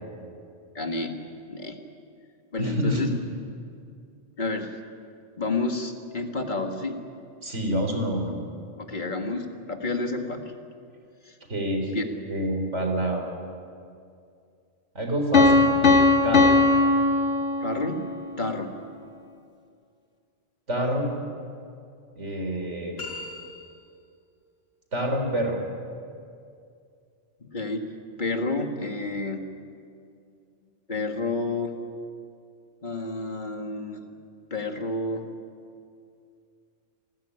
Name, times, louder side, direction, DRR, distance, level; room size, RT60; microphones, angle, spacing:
voice 1, 0.8-1.2 1.5-1.8 2.5-3.1 4.4-4.7 5.4-7.0 8.8-10.5 11.3-11.4 11.9-12.0 17.6-18.0 18.4-18.7 27.4-27.9 28.2-29.4 30.9-31.7 32.8-34.0 34.5-35.2, left 2 dB, 40° left, 4 dB, 2.0 m, -30 dB
voice 2, 2.6-3.2 7.4-8.3 11.5-11.9 12.3-13.3 14.9-15.6 16.2-16.5 20.7-21.1 22.1-23.0 24.9-25.6, right 1 dB, 80° right, 3 dB, 4.3 m, -27 dB
Piano, 15.3-18.1, left 3 dB, 75° left, 2.2 m, -19 dB
sound 1, 23.0-24.1, left 3 dB, 60° left, 6.2 m, -39 dB
27.5 x 14.0 x 9.9 m, 2.4 s
omnidirectional pair, 1.2 m